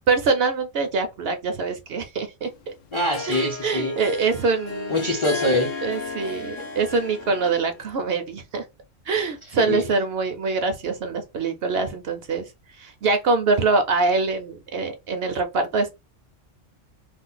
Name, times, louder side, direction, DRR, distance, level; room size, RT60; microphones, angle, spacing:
voice 1, 0.1-2.5 3.3-5.1 5.8-8.6 9.1-12.5 12.8-16.0, right 4 dB, 65° right, 0.7 m, -24 dB
Harp, 2.5-7.8, left 4 dB, 85° left, 0.9 m, -34 dB
voice 2, 2.9-4.0 4.9-5.7 9.6-9.8, left 1 dB, 35° left, 0.5 m, -24 dB
2.5 x 2.2 x 3.8 m
omnidirectional pair, 1.3 m